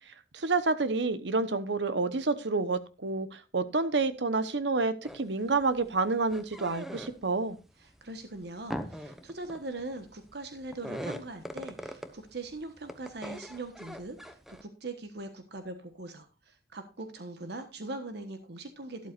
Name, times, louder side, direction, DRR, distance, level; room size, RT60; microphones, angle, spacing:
voice 1, 0.3-7.6, right 3 dB, 85° right, 13 dB, 1.0 m, -29 dB
sound 1, 5.0-5.3 5.6-7.4 7.8-12.5 12.8-14.6, equal, ahead, 1.0 m, -41 dB
voice 2, 7.8-19.1, right 2 dB, 70° right, 8 dB, 1.2 m, -41 dB
12.5 x 11.5 x 2.5 m, 0.30 s
head